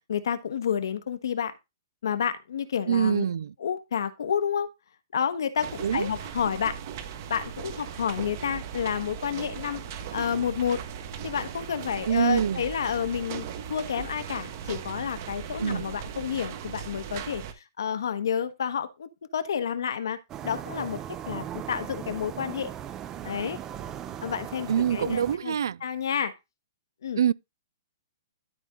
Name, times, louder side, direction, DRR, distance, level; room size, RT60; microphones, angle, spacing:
voice 1, 0.1-1.5 2.0-3.2 3.6-4.7 5.1-6.8 7.3-9.8 10.1-10.8 11.2-17.4 17.8-20.2 20.4-22.7 23.2-23.6 24.2-25.5 25.8-26.3 27.0-27.2, left 8 dB, 80° left, 1.3 m, -30 dB
voice 2, 2.9-3.5 5.8-6.1 12.1-12.6 15.6-15.9 24.7-25.8 27.2-27.3, right 8 dB, 80° right, 0.4 m, -25 dB
sound 1, 5.6-17.5, right 8 dB, 40° right, 1.2 m, -38 dB
sound 2, 20.3-25.4, right 10 dB, 20° right, 0.6 m, -38 dB
12.5 x 4.3 x 3.8 m
hypercardioid pair, 160°, 2 cm